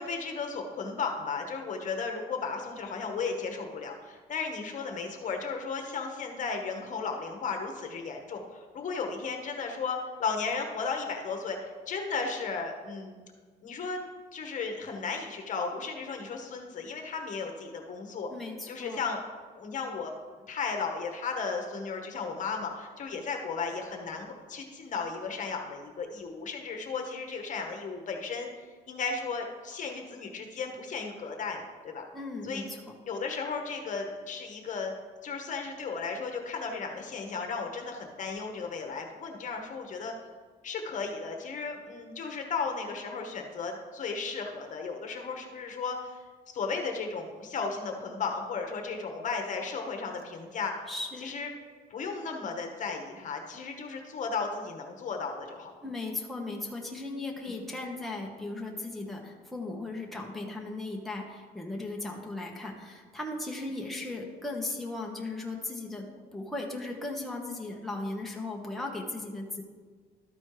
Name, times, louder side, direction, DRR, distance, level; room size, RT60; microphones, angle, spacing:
voice 1, 0.0-13.2 13.6-14.0 14.3-18.3 18.7-19.2 19.6-20.1 20.5-28.5 28.9-32.0 32.4-32.6 33.1-34.9 35.2-40.1 40.6-46.2 46.5-50.7 51.2-51.5 51.9-55.7 57.5-57.6, left 4 dB, 50° left, 3 dB, 1.2 m, -35 dB
voice 2, 18.3-19.0 32.1-32.9 50.9-51.3 55.8-69.6, left 2 dB, ahead, -1 dB, 1.1 m, -37 dB
12.5 x 4.3 x 4.8 m, 1.5 s
cardioid pair, 110°, 17 cm